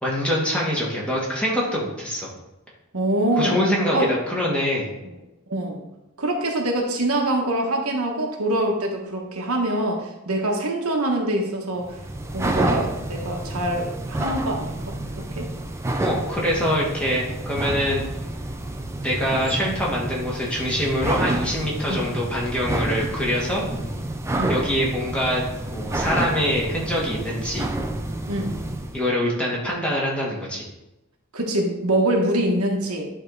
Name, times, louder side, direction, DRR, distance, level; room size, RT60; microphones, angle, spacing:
voice 1, 0.0-2.3 3.4-4.9 16.0-18.0 19.0-23.6 24.5-27.7 28.9-30.6, equal, 5° left, -5 dB, 1.6 m, -24 dB
voice 2, 2.9-3.6 3.9-4.1 5.5-5.8 6.2-12.0 12.3-15.5 19.6-19.8 21.9-22.1 24.4-24.6 28.3-28.6 31.3-33.1, right 1 dB, 80° right, 1 dB, 1.2 m, -24 dB
sound 1, 11.8-29.0, right 1 dB, 10° right, 0.4 m, -29 dB
10.0 x 3.6 x 4.0 m, 0.95 s
head